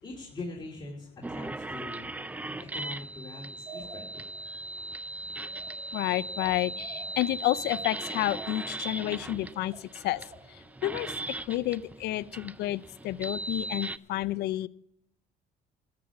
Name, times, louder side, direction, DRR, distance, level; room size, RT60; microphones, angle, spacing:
voice 1, 0.0-2.1 2.7-4.3, left 2 dB, 25° left, -3 dB, 2.7 m, -42 dB
sound 1, 1.2-14.0, right 2 dB, 10° right, 0.4 m, -39 dB
sound 2, 3.7-4.7 5.4-10.7, right 3 dB, 35° right, 1.9 m, -49 dB
voice 2, 5.9-10.2 10.5-11.1 11.5-14.7, left 15 dB, 75° left, 16 dB, 0.5 m, -30 dB
13.5 x 8.6 x 5.9 m, 0.75 s
cardioid pair, 110°, 17 cm